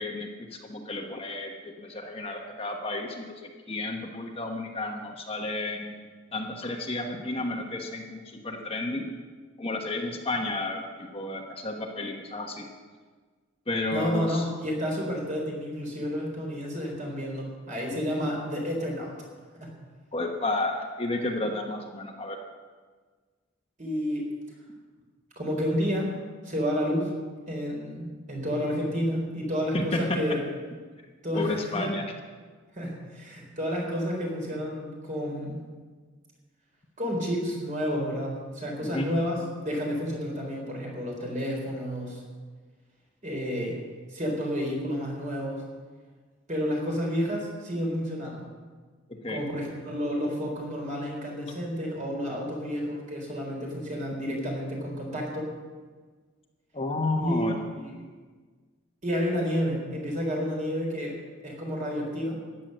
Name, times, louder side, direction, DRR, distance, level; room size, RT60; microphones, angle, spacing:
voice 1, 0.0-6.0 6.3-9.1 9.6-12.6 13.7-14.4 20.1-22.4 29.7-30.2 31.3-32.1 38.8-39.1 49.1-49.4 56.7-57.5, left 2 dB, 30° left, 2 dB, 1.1 m, -32 dB
voice 2, 13.9-19.1 19.6-19.7 23.8-24.3 25.4-26.1 26.4-27.1 27.5-30.4 31.2-31.8 32.7-35.6 37.0-42.2 43.2-43.8 44.1-45.6 46.5-48.4 49.3-55.5 57.2-57.4 57.7-58.0 59.0-61.1 61.4-62.4, equal, 40° right, -1 dB, 4.0 m, -30 dB
14.0 x 9.6 x 6.6 m, 1.5 s
head